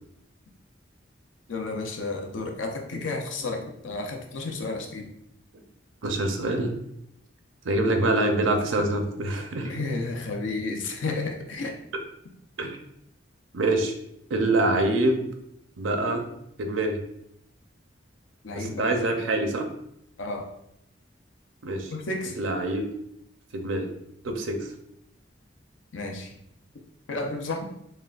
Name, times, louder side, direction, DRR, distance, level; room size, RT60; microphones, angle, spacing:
voice 1, 1.5-5.1 9.6-11.8 18.4-18.9 20.2-20.5 21.9-22.4 25.9-26.3 27.1-27.7, left 3 dB, 85° left, 3 dB, 0.6 m, -32 dB
voice 2, 6.0-6.8 7.6-9.7 12.6-12.8 13.5-13.9 14.3-15.2 15.8-16.2 16.6-17.0 18.6-19.7 21.6-21.9 22.4-22.9 23.5-23.9 24.2-24.7, right 2 dB, 90° right, 5 dB, 0.6 m, -25 dB
6.2 x 2.2 x 2.4 m, 0.77 s
head